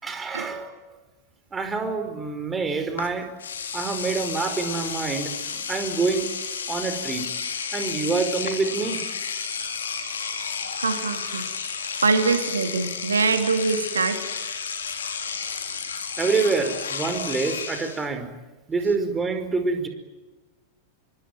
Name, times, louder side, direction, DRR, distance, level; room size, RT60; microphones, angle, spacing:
voice 1, 0.0-0.7 1.5-3.3 3.7-5.3 5.7-6.3 6.7-7.2 7.7-9.0 16.2-18.3 18.7-19.9, right 4 dB, 15° right, 8 dB, 5.0 m, -26 dB
Engine / Domestic sounds home sounds, 3.0-3.1 3.4-18.0, left 6 dB, 70° left, 3.7 m, -32 dB
voice 2, 9.4-11.5 11.8-14.2, right 4 dB, 75° right, 7 dB, 2.6 m, -25 dB
26.0 x 24.5 x 9.3 m, 1.2 s
figure-of-eight pair, 90°, 0 cm